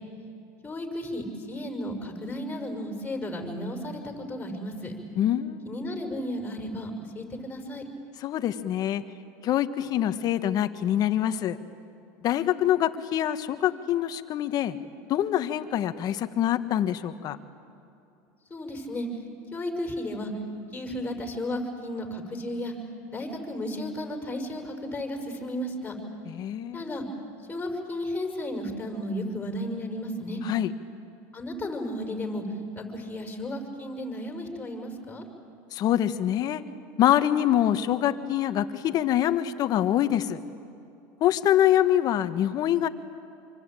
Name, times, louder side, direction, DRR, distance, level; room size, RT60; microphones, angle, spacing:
voice 1, 0.6-4.9 5.6-7.8 18.5-19.1 19.5-20.3 20.7-22.7 23.1-25.9 26.7-27.0 27.5-30.4 31.3-32.4 32.8-35.2, left 1 dB, 15° left, 3 dB, 5.6 m, -34 dB
voice 2, 5.2-5.6 8.2-9.0 9.4-11.6 12.2-14.8 15.1-17.4 26.3-26.9 30.4-30.7 35.7-36.6 37.0-40.4 41.2-42.9, left 11 dB, 45° left, 11 dB, 1.4 m, -25 dB
26.0 x 25.0 x 9.1 m, 2.7 s
supercardioid pair, 110°, 9 cm